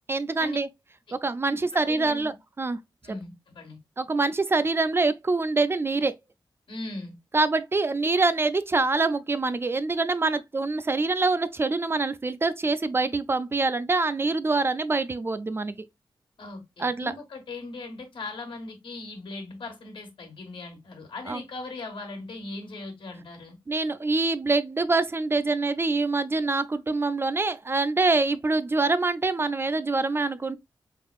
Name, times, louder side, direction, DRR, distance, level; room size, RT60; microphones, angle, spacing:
voice 1, 0.1-0.7 1.2-2.3 2.6-2.8 3.1-3.2 4.0-6.2 7.3-15.8 16.8-17.1 21.3-21.4 23.7-30.6, right 3 dB, 30° right, 0.3 m, -25 dB
voice 2, 1.5-2.3 3.0-3.8 6.7-7.2 16.4-23.6, left 2 dB, 80° left, 1.3 m, -39 dB
4.4 x 3.6 x 2.3 m
wide cardioid pair, 115°, 8 cm